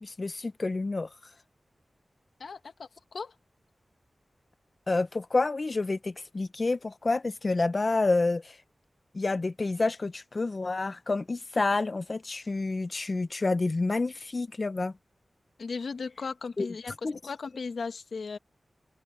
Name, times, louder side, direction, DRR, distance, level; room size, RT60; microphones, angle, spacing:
voice 1, 0.0-1.1 4.9-8.6 9.1-14.9 16.6-16.7 17.0-17.2, left 3 dB, 45° left, 0.5 m, -28 dB
voice 2, 2.4-3.3 15.6-18.4, left 4 dB, 85° left, 1.4 m, -37 dB
wide cardioid pair, 105°, 0 cm